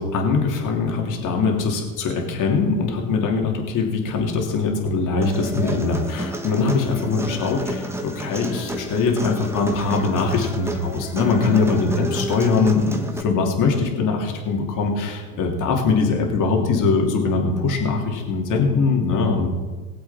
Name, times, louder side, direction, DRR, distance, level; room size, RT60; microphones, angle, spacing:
voice 1, 0.0-19.5, left 4 dB, 45° left, 1 dB, 2.9 m, -22 dB
Human voice, 5.2-13.2, right 1 dB, 5° right, 1.4 m, -30 dB
19.5 x 7.8 x 4.3 m, 1.4 s
hypercardioid pair, 90°, 43 cm